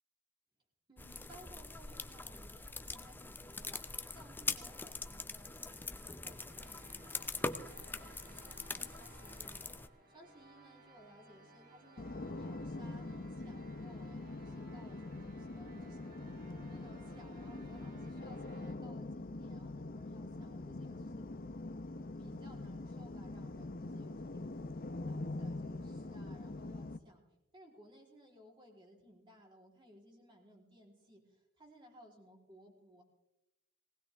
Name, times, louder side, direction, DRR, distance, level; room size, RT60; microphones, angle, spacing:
voice 1, 0.9-9.7 10.1-21.3 22.2-24.8 25.1-27.2 27.5-33.0, equal, 20° right, 0 dB, 3.7 m, -60 dB
sound 1, 1.0-9.9, left 3 dB, 10° left, 0.6 m, -43 dB
sound 2, 3.5-18.7, right 2 dB, 40° right, 2.6 m, -60 dB
sound 3, 12.0-27.0, left 2 dB, 45° left, 0.8 m, -44 dB
20.0 x 18.5 x 3.5 m, 0.92 s
head